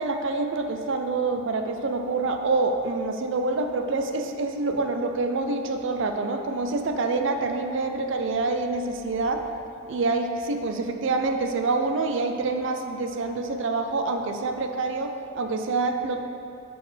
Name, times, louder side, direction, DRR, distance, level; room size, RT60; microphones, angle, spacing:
voice 1, 0.0-9.4 9.9-16.2, right 3 dB, 65° right, 5 dB, 0.5 m, -26 dB
10.0 x 4.3 x 3.3 m, 2.6 s
head